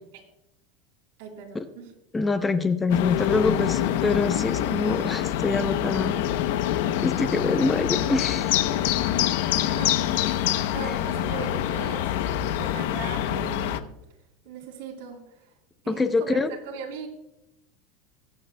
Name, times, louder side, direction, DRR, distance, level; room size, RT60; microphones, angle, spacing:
voice 1, 1.2-1.9 9.1-10.1 10.7-12.1 12.5-13.9 14.5-15.5 15.8-17.1, right 6 dB, 70° right, 1 dB, 3.6 m, -39 dB
voice 2, 2.1-6.2 7.0-8.5 15.9-16.5, left 3 dB, 10° left, 9 dB, 0.6 m, -25 dB
sound 1, 2.9-13.8, left 12 dB, 70° left, 0.7 m, -25 dB
23.0 x 8.7 x 2.2 m, 0.85 s
supercardioid pair, 160°, 0 cm